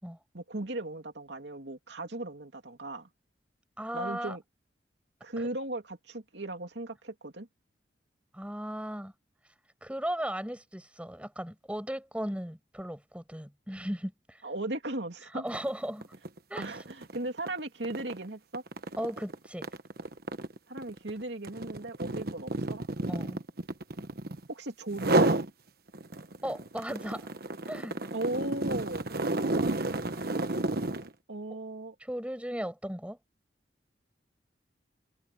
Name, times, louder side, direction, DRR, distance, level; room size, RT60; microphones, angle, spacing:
voice 1, 0.3-3.1 3.9-4.4 5.2-7.5 14.4-15.4 16.6-18.6 20.7-22.8 24.5-25.4 28.1-29.1 31.3-31.9, right 2 dB, 75° right, 2.7 m, -37 dB
voice 2, 3.8-4.4 5.4-5.5 8.3-9.1 9.8-14.4 15.3-16.1 16.5-16.8 19.0-19.7 23.1-23.4 26.4-27.3 27.7-27.9 32.0-33.2, equal, 5° right, 5.5 m, -36 dB
sound 1, 15.5-15.7 16.0-24.5 24.9-25.5 25.9-31.1, right 2 dB, 60° right, 1.3 m, -31 dB
head